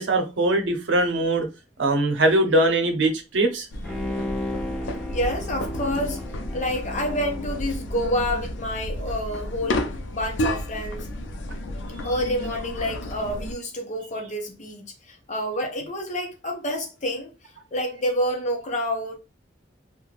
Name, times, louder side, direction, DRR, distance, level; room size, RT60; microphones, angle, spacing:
voice 1, 0.0-1.5 1.8-3.7, right 1 dB, 80° right, 0.7 m, -21 dB
sound 1, 3.7-13.5, left 1 dB, 90° left, 0.5 m, -32 dB
Bowed string instrument, 3.8-8.4 8.8-8.9, left 1 dB, 5° left, 0.5 m, -35 dB
voice 2, 5.1-6.2 6.5-11.1 12.0-17.3 17.7-19.2, equal, 40° left, 0.7 m, -28 dB
2.4 x 2.2 x 3.1 m
head